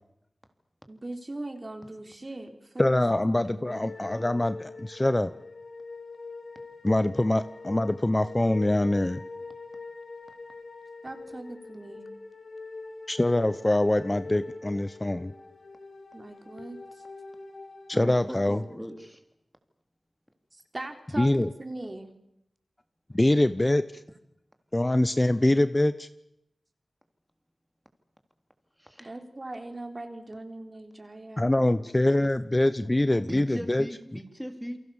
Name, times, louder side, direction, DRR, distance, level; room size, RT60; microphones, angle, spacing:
voice 1, 0.9-3.8 11.0-12.0 16.1-17.0 20.5-22.1 29.0-31.9 32.8-33.2, right 2 dB, 40° right, 6 dB, 4.0 m, -40 dB
voice 2, 2.8-5.3 6.8-9.2 13.1-15.3 17.9-18.6 21.2-21.5 23.1-24.0 24.7-26.1 31.4-33.9, left 1 dB, 25° left, 13 dB, 0.9 m, -24 dB
sound 1, 3.7-18.8, left 3 dB, 90° left, 3.3 m, -44 dB
voice 3, 17.9-19.2 28.8-29.1 33.1-34.8, equal, ahead, 6 dB, 3.6 m, -39 dB
29.0 x 23.5 x 7.3 m, 0.81 s
wide cardioid pair, 55°, 0 cm